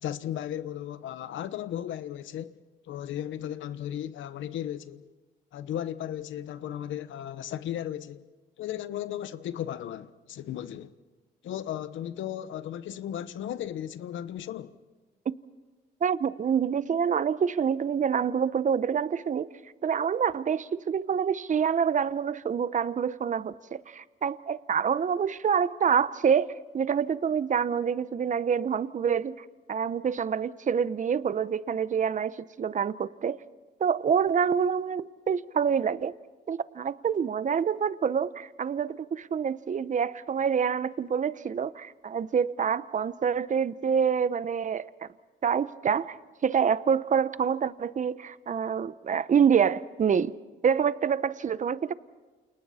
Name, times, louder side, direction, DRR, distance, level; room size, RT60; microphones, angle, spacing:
voice 1, 0.0-2.5 2.9-5.1 5.5-8.2 8.6-10.9 11.4-14.7, left 11 dB, 75° left, 1.0 m, -35 dB
voice 2, 16.0-19.5 19.8-33.4 33.8-36.1 36.5-45.1 45.4-46.2 46.4-50.3 50.6-51.9, right 7 dB, 40° right, 0.8 m, -27 dB
29.0 x 28.5 x 4.3 m
cardioid pair, 90°, 20 cm